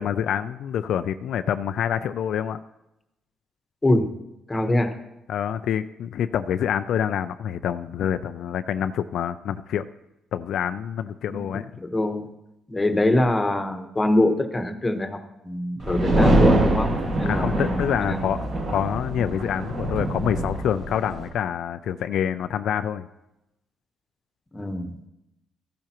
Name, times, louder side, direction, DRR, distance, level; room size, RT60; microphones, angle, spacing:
voice 1, 0.0-2.6 5.3-9.8 10.3-11.7 17.2-18.4 18.7-23.1, left 9 dB, 75° left, 10 dB, 0.4 m, -26 dB
voice 2, 4.5-4.9 11.3-11.5 11.8-12.2 12.7-16.9 17.2-18.2 24.5-25.0, left 1 dB, 20° left, 6 dB, 1.1 m, -24 dB
sound 1, 15.8-21.3, right 1 dB, 65° right, 4.5 m, -23 dB
14.0 x 10.5 x 3.0 m, 0.91 s
cardioid pair, 90°, 0 cm